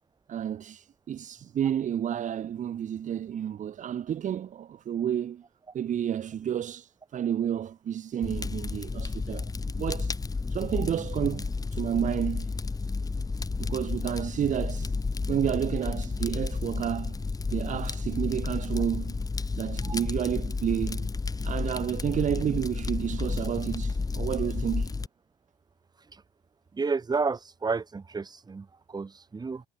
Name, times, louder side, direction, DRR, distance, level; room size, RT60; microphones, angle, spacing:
voice 1, 0.3-5.4 5.7-10.2 10.5-12.5 13.6-14.9 15.3-17.2 17.5-19.1 19.5-21.1 21.4-24.9, right 9 dB, 45° right, 1.3 m, -31 dB
Fire, 8.2-25.1, left 4 dB, 20° left, 6.7 m, -31 dB
voice 2, 26.7-29.6, right 4 dB, 25° right, 3.2 m, -31 dB
cardioid pair, 110°, 17 cm